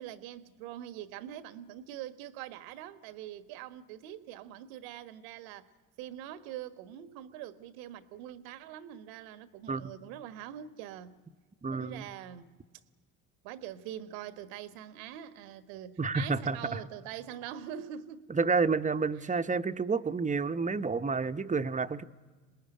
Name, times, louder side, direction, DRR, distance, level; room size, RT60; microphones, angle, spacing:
voice 1, 0.0-5.7 6.0-11.2 11.7-12.5 13.4-18.3 19.2-19.3, right 11 dB, 75° right, 1.4 m, -44 dB
voice 2, 11.6-12.1 16.0-16.8 18.3-22.0, right 4 dB, 20° right, 0.9 m, -30 dB
25.5 x 19.5 x 10.0 m
hypercardioid pair, 65°, 42 cm